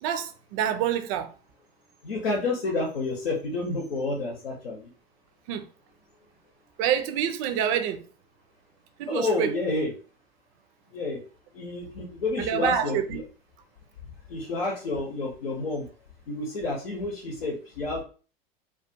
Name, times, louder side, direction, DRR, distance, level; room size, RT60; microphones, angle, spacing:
voice 1, 0.0-1.3 5.5-5.7 6.8-8.0 9.0-9.5 12.4-13.2, right 9 dB, 45° right, 0.5 m, -27 dB
voice 2, 2.0-4.9 9.1-9.9 10.9-11.2 11.5-13.2 14.3-15.9 16.3-18.0, left 3 dB, 80° left, 0.7 m, -29 dB
2.3 x 2.3 x 2.6 m
figure-of-eight pair, 80°, 29 cm